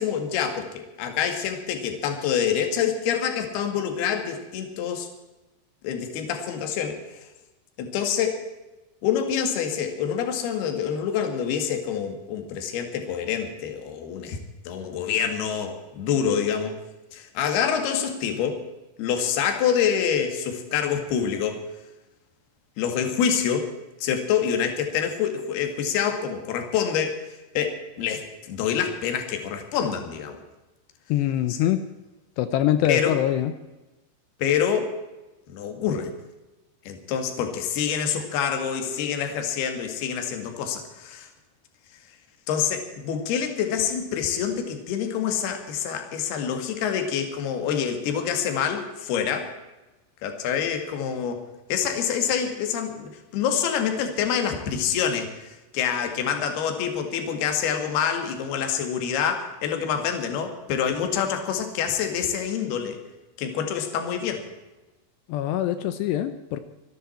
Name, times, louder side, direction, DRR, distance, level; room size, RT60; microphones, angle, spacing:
voice 1, 0.0-5.1 5.8-7.0 7.8-8.4 9.0-14.4 14.7-16.8 17.1-18.6 19.0-21.6 22.8-23.7 24.0-30.4 31.5-31.6 32.8-33.1 34.4-34.9 35.5-36.1 36.9-41.3 42.5-49.5 50.2-51.4 51.7-63.0 63.4-64.4, left 8 dB, 60° left, 6 dB, 3.5 m, -26 dB
voice 2, 31.1-31.8 32.4-33.5 65.3-66.6, left 11 dB, 80° left, 11 dB, 2.6 m, -24 dB
26.0 x 11.0 x 4.4 m, 1.1 s
omnidirectional pair, 5.5 m